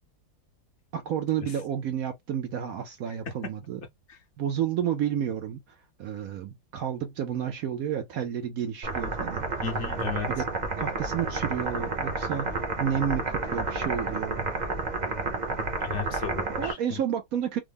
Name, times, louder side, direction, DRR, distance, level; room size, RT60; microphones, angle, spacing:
voice 1, 0.9-3.8 4.4-9.4 10.4-10.5 10.8-14.5 16.4-17.6, right 9 dB, 75° right, 0.8 m, -31 dB
sound 1, 8.8-16.7, right 3 dB, 45° right, 0.6 m, -30 dB
voice 2, 9.6-10.3 15.8-17.0, left 6 dB, 50° left, 0.9 m, -34 dB
3.5 x 2.1 x 3.4 m
omnidirectional pair, 2.0 m